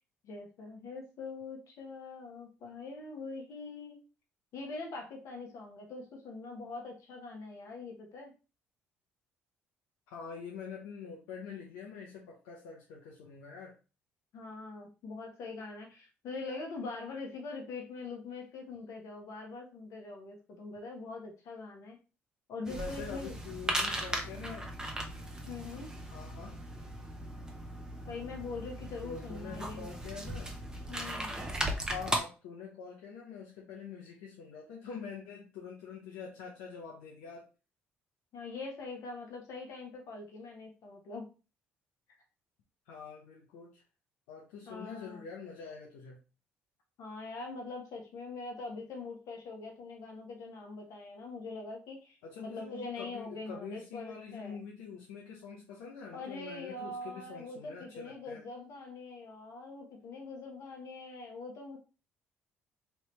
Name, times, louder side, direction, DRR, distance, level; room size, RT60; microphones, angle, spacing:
voice 1, 0.2-4.0 4.5-8.3 14.3-22.0 22.5-23.3 25.5-25.9 28.1-29.9 30.9-31.3 38.3-41.3 44.7-45.2 47.0-54.6 56.1-61.8, left 3 dB, 65° left, 2 dB, 1.1 m, -43 dB
voice 2, 10.1-13.7 22.7-24.7 26.1-26.6 29.0-30.5 31.8-37.5 42.9-43.8 44.3-46.2 52.2-58.4, left 5 dB, 85° left, -2 dB, 0.7 m, -45 dB
sound 1, 22.6-32.2, right 1 dB, 10° right, 0.9 m, -37 dB
3.2 x 2.7 x 3.2 m, 0.32 s
supercardioid pair, 65°, 6 cm